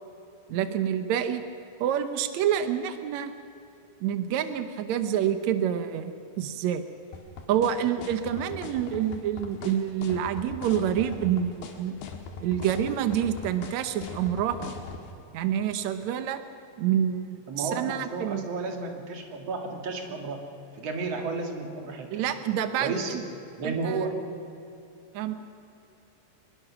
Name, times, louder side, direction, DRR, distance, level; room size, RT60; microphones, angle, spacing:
voice 1, 0.5-1.4 1.8-3.3 4.0-6.8 7.5-12.0 12.4-14.7 15.3-16.4 16.8-18.4 22.1-23.2 23.6-24.1 25.1-25.4, right 9 dB, 85° right, 10 dB, 1.6 m, -27 dB
sound 1, 7.1-15.0, left 5 dB, 85° left, 3.7 m, -39 dB
voice 2, 17.5-20.4 20.7-22.3 22.8-23.2 23.6-24.1, right 4 dB, 45° right, 3 dB, 2.8 m, -32 dB
24.0 x 21.5 x 6.1 m, 2.7 s
omnidirectional pair, 4.4 m